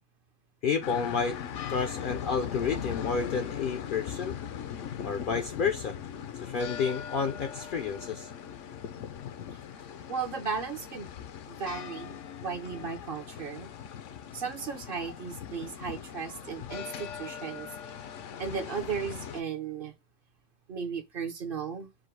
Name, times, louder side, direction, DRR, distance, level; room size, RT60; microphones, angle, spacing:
voice 1, 0.6-1.4 1.7-4.4 5.0-6.0 6.4-8.3 9.7-9.8, left 5 dB, 60° left, 0.6 m, -30 dB
sound 1, 0.8-19.4, left 8 dB, 80° left, 1.0 m, -40 dB
voice 2, 10.1-11.1 11.5-13.7 14.3-18.0 18.4-19.9 20.7-21.9, right 6 dB, 50° right, 0.9 m, -36 dB
4.9 x 2.2 x 4.5 m
omnidirectional pair, 1.3 m